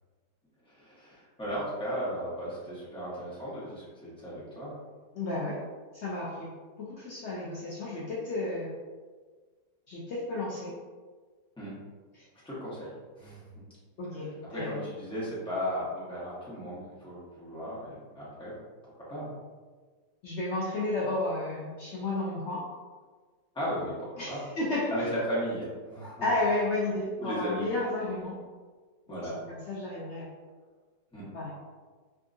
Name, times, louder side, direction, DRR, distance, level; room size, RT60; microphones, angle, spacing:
voice 1, 0.7-4.7 11.6-11.7 12.4-12.9 13.2-13.4 14.5-18.5 19.1-19.3 23.5-24.4 24.9-26.3 27.2-27.7 29.1-29.4 31.1-31.2, equal, 5° left, -9 dB, 0.8 m, -35 dB
voice 2, 5.1-5.6 5.9-8.7 9.9-10.7 12.1-12.3 14.0-14.8 20.2-22.6 24.2-24.9 26.2-28.4 29.5-30.3 31.3-31.5, left 2 dB, 85° left, -6 dB, 0.6 m, -32 dB
3.5 x 2.4 x 2.5 m, 1.4 s
omnidirectional pair, 1.8 m